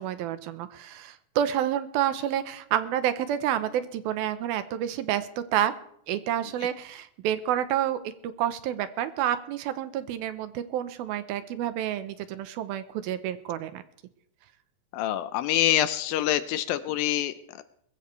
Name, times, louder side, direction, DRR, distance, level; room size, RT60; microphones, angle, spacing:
voice 1, 0.0-5.7 6.1-13.8, right 11 dB, 80° right, 12 dB, 2.6 m, -29 dB
voice 2, 14.9-17.6, left 12 dB, 80° left, 12 dB, 2.3 m, -26 dB
20.5 x 15.0 x 3.3 m, 0.69 s
omnidirectional pair, 4.4 m